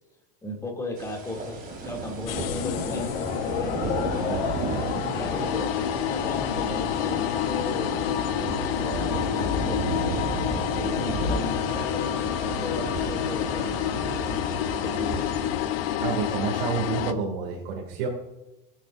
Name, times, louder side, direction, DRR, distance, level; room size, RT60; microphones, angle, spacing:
voice 1, 0.4-8.0 8.6-10.0 10.5-14.3 14.6-15.3, left 1 dB, 10° left, -1 dB, 2.6 m, -36 dB
sound 1, 1.0-15.5, right 2 dB, 30° right, 3.3 m, -33 dB
sound 2, 2.3-17.1, left 10 dB, 85° left, 1.0 m, -28 dB
voice 2, 16.0-18.1, right 6 dB, 75° right, -1 dB, 2.5 m, -29 dB
19.0 x 8.9 x 2.6 m, 1.0 s
supercardioid pair, 150°, 29 cm